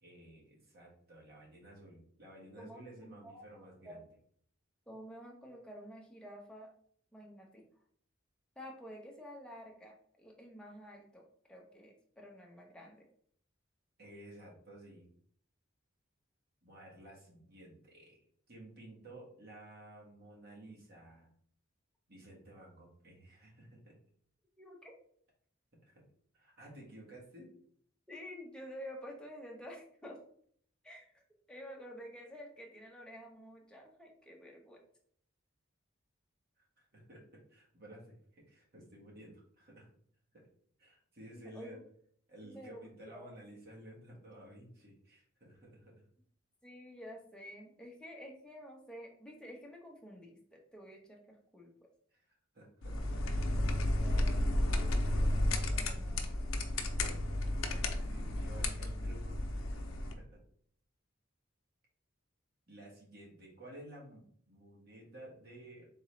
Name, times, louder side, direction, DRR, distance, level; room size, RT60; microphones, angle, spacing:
voice 1, 0.0-4.1 14.0-15.1 16.6-18.2 18.5-21.3 22.1-23.9 25.8-26.0 26.3-27.5 36.6-36.7 36.9-39.9 40.3-40.5 40.8-41.8 42.3-46.0 52.1-52.2 52.5-53.3 58.0-59.4 59.7-59.9 60.1-60.4 62.7-65.9, right 1 dB, 50° right, -3 dB, 1.5 m, -54 dB
voice 2, 2.6-4.0 4.9-6.7 7.1-7.6 8.6-13.1 24.6-24.9 28.1-30.2 30.8-31.2 31.5-34.8 41.3-41.8 42.4-43.3 46.6-51.7 54.0-56.3, equal, 5° left, -1 dB, 0.8 m, -50 dB
sound 1, 52.8-60.1, left 1 dB, 85° left, 0.6 m, -32 dB
3.9 x 3.6 x 3.2 m, 0.62 s
head